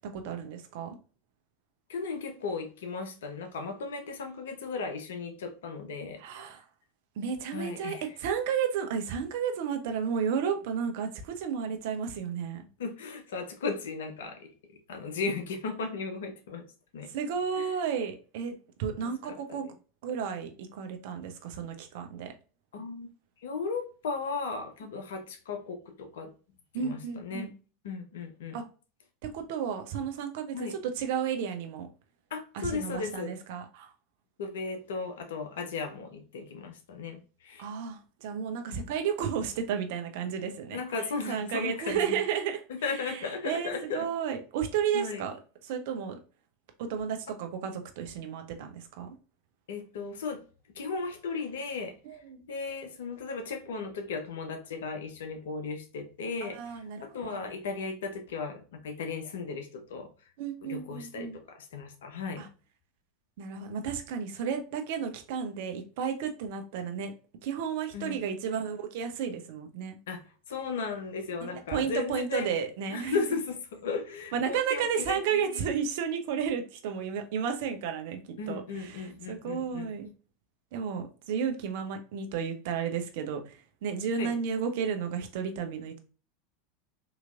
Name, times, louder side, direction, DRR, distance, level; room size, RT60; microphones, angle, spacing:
voice 1, 0.1-1.0 6.2-6.6 7.2-12.7 17.1-18.5 18.8-19.7 20.0-22.3 26.7-27.5 28.5-28.6 29.2-31.9 32.5-33.9 37.6-40.8 41.3-42.6 42.9-46.2 46.8-49.1 52.0-52.4 56.4-57.4 60.4-61.4 62.4-62.5 63.4-67.1 67.4-70.0 71.4-73.2 74.3-78.2 78.5-80.1 80.7-86.0, right 7 dB, 60° right, 0.7 m, -33 dB
voice 2, 1.9-6.2 7.5-8.1 12.8-14.5 14.9-16.6 16.9-17.1 17.6-17.7 19.0-19.4 22.7-23.1 23.4-26.3 26.8-27.5 27.8-28.6 30.5-30.7 32.3-33.3 34.4-37.7 38.7-38.9 40.7-42.2 42.7-44.1 44.9-45.2 49.7-50.4 50.7-51.9 52.5-60.1 60.6-62.4 67.9-68.2 70.1-70.2 70.5-72.5 72.9-73.6 73.8-75.2 75.5-75.6 78.4-79.9 84.2-84.3, left 4 dB, 70° left, 0.8 m, -36 dB
3.9 x 3.0 x 2.4 m
hypercardioid pair, 85°, 0 cm